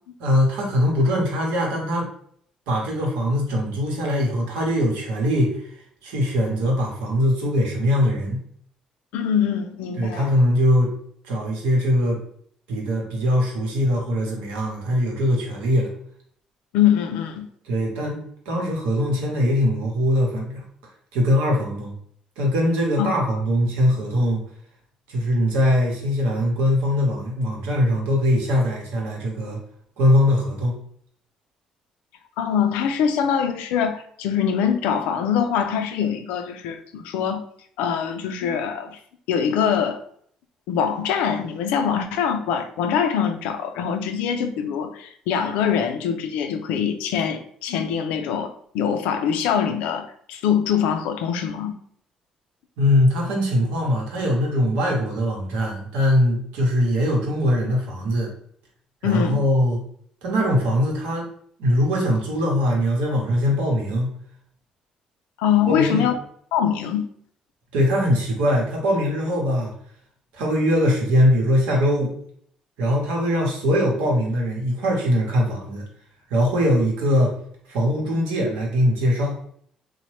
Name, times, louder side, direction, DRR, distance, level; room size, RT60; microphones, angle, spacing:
voice 1, 0.2-2.1 2.7-5.7 6.0-8.4 10.0-10.9 11.2-12.2 12.7-15.9 17.6-20.6 21.1-21.9 22.4-24.4 25.1-29.6 30.0-30.8 52.8-58.3 59.0-59.8 60.2-61.3 61.6-64.1 65.7-66.1 67.7-69.7 70.3-72.2 72.8-75.8 76.3-77.3 77.7-79.4, equal, 90° right, 0.9 m, -21 dB
voice 2, 9.1-10.3 16.7-17.5 23.0-23.3 32.4-37.4 37.8-39.0 39.3-40.0 40.7-51.7 59.0-59.4 65.4-66.1 66.5-67.1, left 8 dB, 90° left, 0.3 m, -23 dB
3.0 x 2.1 x 3.1 m
supercardioid pair, 80°, 2 cm